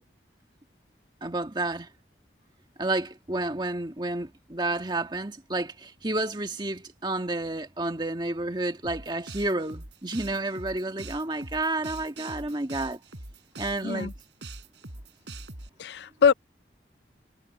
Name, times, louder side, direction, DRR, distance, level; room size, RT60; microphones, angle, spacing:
voice 1, 1.2-1.9 2.8-13.0 13.6-14.1, right 2 dB, 25° right, 1.8 m, -30 dB
sound 1, 8.8-15.7, right 2 dB, 85° right, 4.4 m, -42 dB
voice 2, 15.8-16.3, left 6 dB, 75° left, 0.5 m, -23 dB
head